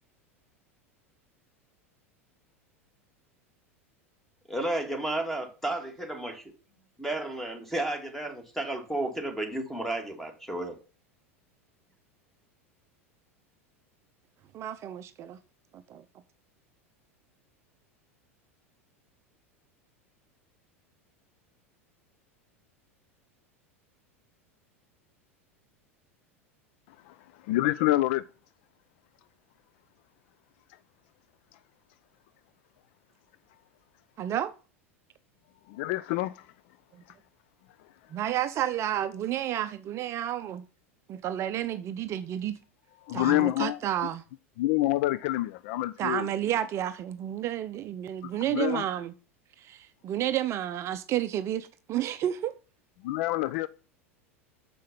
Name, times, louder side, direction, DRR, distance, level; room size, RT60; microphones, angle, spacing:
voice 1, 4.5-6.4 7.0-10.8, right 1 dB, 5° left, 2.3 m, -32 dB
voice 2, 14.5-15.4 15.7-16.0 34.2-34.5 38.1-40.6 41.1-42.6 43.1-44.2 46.0-49.1 49.6-52.5, right 11 dB, 40° right, 0.5 m, -31 dB
voice 3, 27.5-28.2 35.7-36.3 43.1-43.8 44.6-46.3 48.2-48.8 53.0-53.7, left 16 dB, 55° left, 0.4 m, -27 dB
6.7 x 5.6 x 5.2 m
figure-of-eight pair, 85°, 8 cm